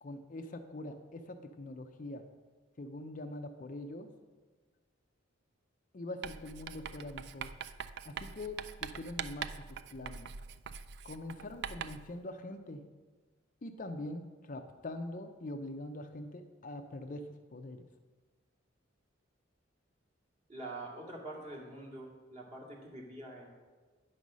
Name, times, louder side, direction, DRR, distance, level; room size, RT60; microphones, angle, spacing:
voice 1, 0.0-2.2 2.8-4.1 5.9-7.5 8.0-10.3 11.0-12.8 13.6-17.2 17.5-17.9, left 1 dB, 40° left, 6 dB, 0.5 m, -43 dB
Writing, 6.2-12.1, right 7 dB, 55° right, 0.3 m, -43 dB
voice 2, 20.5-23.5, right 2 dB, 35° right, -3 dB, 2.1 m, -45 dB
9.6 x 5.4 x 6.2 m, 1.4 s
head